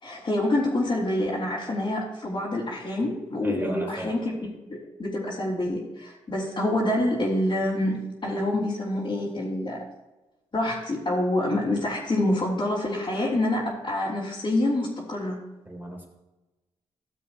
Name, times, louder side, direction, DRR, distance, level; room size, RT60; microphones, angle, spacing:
voice 1, 0.0-9.8 10.5-15.4, left 1 dB, 40° left, -8 dB, 3.3 m, -27 dB
voice 2, 3.4-4.2 15.7-16.1, right 1 dB, 15° right, -2 dB, 3.8 m, -35 dB
14.5 x 7.4 x 3.1 m, 1.1 s
cardioid pair, 55°, 13 cm